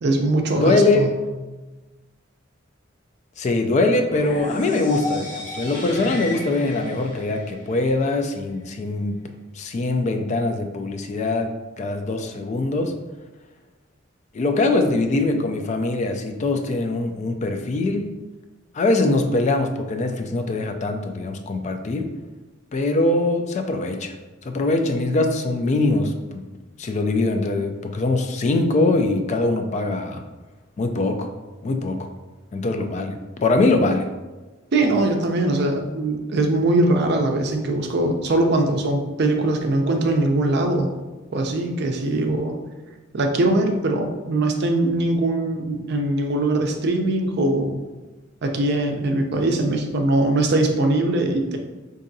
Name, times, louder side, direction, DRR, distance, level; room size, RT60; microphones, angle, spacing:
voice 1, 0.0-1.1 34.7-41.0 41.3-42.5 43.1-47.8 48.4-51.6, right 2 dB, 55° right, 4 dB, 0.5 m, -21 dB
voice 2, 0.6-1.0 3.4-9.2 9.5-13.0 14.3-18.0 18.7-22.1 22.7-24.2 24.4-26.4 26.8-30.2 30.8-31.3 31.6-32.1 32.5-34.1, left 2 dB, 35° left, 6 dB, 0.3 m, -22 dB
sound 1, 4.1-8.1, left 1 dB, 65° left, 1.3 m, -33 dB
4.7 x 2.6 x 2.6 m, 1.2 s
head